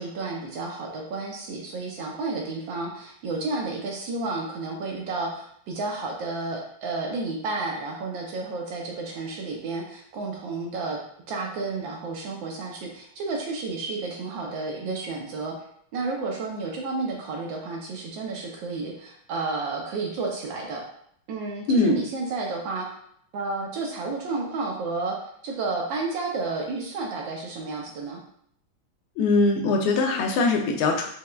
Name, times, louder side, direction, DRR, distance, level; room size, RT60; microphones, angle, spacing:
voice 1, 0.0-11.0 11.3-15.5 15.9-20.8 21.3-22.9 23.3-25.2 25.4-28.2, right 3 dB, 70° right, 0 dB, 1.2 m, -31 dB
voice 2, 29.2-31.1, left 3 dB, 75° left, 2 dB, 1.4 m, -22 dB
5.4 x 2.1 x 2.3 m, 0.67 s
omnidirectional pair, 2.4 m